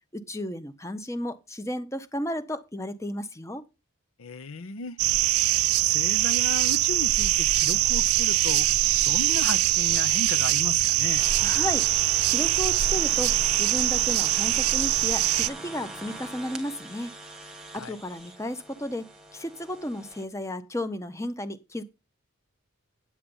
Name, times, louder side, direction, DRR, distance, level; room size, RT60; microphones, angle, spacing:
voice 1, 0.1-3.6 11.4-17.1 17.7-21.8, left 1 dB, 15° left, 0.8 m, -33 dB
voice 2, 4.2-5.0 5.8-8.7 9.0-11.3 17.8-18.0, left 4 dB, 70° left, 0.7 m, -35 dB
sound 1, 5.0-15.5, right 15 dB, 80° right, 0.4 m, -23 dB
sound 2, 11.2-20.2, right 2 dB, 5° right, 1.6 m, -42 dB
8.7 x 8.5 x 5.4 m
head